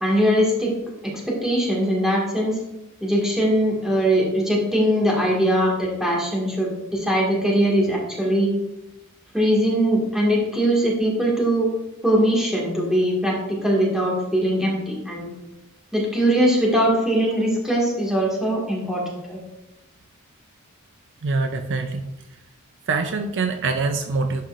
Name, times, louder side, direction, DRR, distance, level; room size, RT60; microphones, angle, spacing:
voice 1, 0.0-0.7 1.0-2.6 3.0-8.5 9.3-11.7 12.0-15.3 15.9-19.0 19.3-19.4, equal, ahead, -4 dB, 1.8 m, -21 dB
voice 2, 21.2-22.1 22.9-24.4, right 3 dB, 55° right, 7 dB, 0.5 m, -24 dB
11.5 x 5.5 x 2.5 m, 0.96 s
head